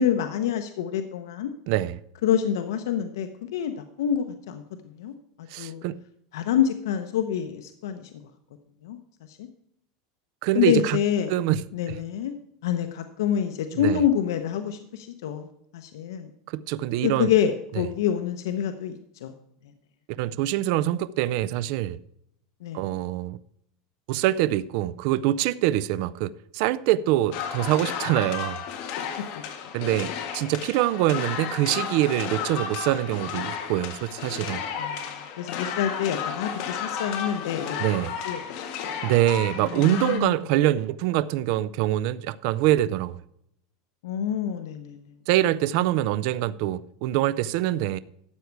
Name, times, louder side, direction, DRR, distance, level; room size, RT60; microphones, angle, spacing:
voice 1, 0.0-1.5 2.2-4.6 5.0-5.1 5.6-5.8 6.3-8.1 8.8-9.0 9.3-9.5 10.5-11.3 11.7-12.3 12.6-15.5 15.7-16.3 17.0-19.3 22.6-22.8 29.3-29.4 34.8-35.0 35.4-37.8 38.3-38.6 39.6-40.4 44.0-45.0, left 9 dB, 85° left, 0.9 m, -27 dB
voice 2, 1.7-2.0 5.5-6.0 10.4-11.0 11.3-12.0 13.7-14.0 16.5-17.3 17.7-17.8 20.2-22.0 22.7-23.4 24.1-28.6 29.7-34.6 37.8-38.1 39.0-43.2 45.3-48.0, right 14 dB, 50° right, 0.4 m, -24 dB
sound 1, 27.3-40.2, left 7 dB, 45° left, 1.7 m, -33 dB
12.5 x 8.1 x 4.7 m
supercardioid pair, 160°, 2 cm